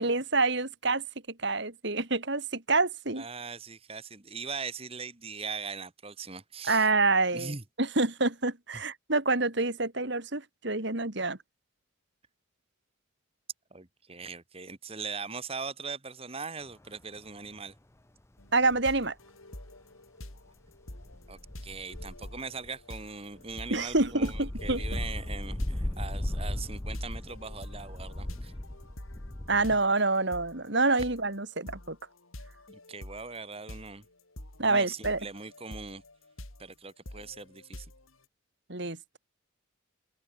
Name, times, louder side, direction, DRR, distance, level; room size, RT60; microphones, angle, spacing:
voice 1, 0.0-3.2 6.6-11.4 18.5-19.1 23.7-24.8 29.5-32.0 34.6-35.2 38.7-39.2, right 3 dB, 55° right, 2.7 m, -27 dB
voice 2, 3.2-6.9 7.3-7.6 13.7-17.7 21.3-28.5 29.7-29.8 32.7-34.0 34.6-36.0 36.6-37.9, right 4 dB, 30° right, 1.6 m, -40 dB
sound 1, 17.2-17.3 18.7-18.9 20.9-22.7 23.3-29.8, left 1 dB, 15° left, 0.6 m, -37 dB
sound 2, 18.4-38.2, left 1 dB, 85° left, 5.3 m, -48 dB
open air
head